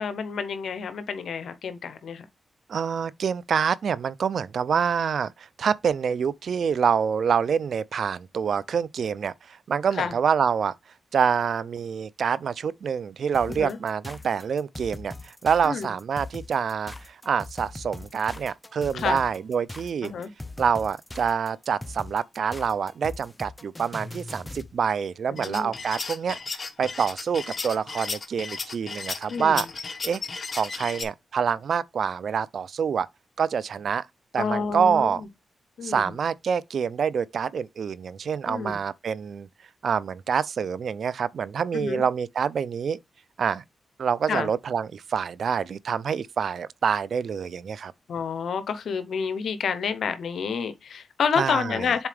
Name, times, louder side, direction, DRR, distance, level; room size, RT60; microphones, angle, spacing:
voice 1, 0.0-2.2 9.9-10.2 13.5-13.8 15.6-15.9 18.9-19.2 20.0-20.3 25.3-25.7 29.3-29.6 34.4-35.3 35.8-36.1 38.5-38.8 41.7-42.0 44.3-44.5 48.1-52.1, left 6 dB, 80° left, 0.8 m, -29 dB
voice 2, 2.7-10.7 11.1-20.1 20.6-26.4 26.8-29.7 30.0-30.2 30.5-33.1 33.4-34.0 34.3-35.2 35.8-39.5 39.8-43.0 43.4-43.6 44.0-47.9 51.4-51.9, right 7 dB, 70° right, 0.4 m, -26 dB
sound 1, 13.3-24.7, left 2 dB, 20° left, 0.7 m, -40 dB
sound 2, 25.4-31.0, left 4 dB, 50° left, 1.2 m, -34 dB
7.1 x 4.2 x 3.3 m
cardioid pair, 70°, 0 cm